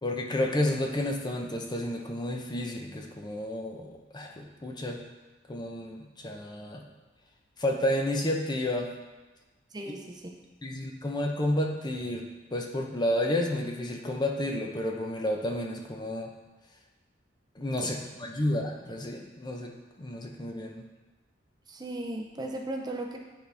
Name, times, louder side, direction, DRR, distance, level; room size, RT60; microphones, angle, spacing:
voice 1, 0.0-5.0 5.5-6.8 7.6-8.9 10.6-16.3 17.6-20.9, left 1 dB, 25° left, 2 dB, 0.6 m, -31 dB
voice 2, 9.7-10.3 17.8-17.9 21.7-23.2, right 1 dB, 20° right, 2 dB, 0.5 m, -36 dB
9.5 x 3.9 x 3.3 m, 1.2 s
head